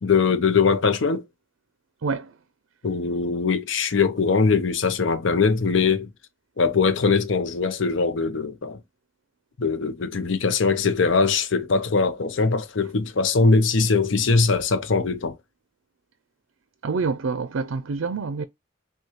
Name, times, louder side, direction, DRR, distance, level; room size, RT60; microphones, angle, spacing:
voice 1, 0.0-1.2 2.8-6.1 6.6-8.8 9.6-15.3, left 4 dB, 65° left, 0.6 m, -21 dB
voice 2, 16.8-18.4, right 4 dB, 75° right, 0.4 m, -27 dB
6.2 x 2.3 x 2.9 m
head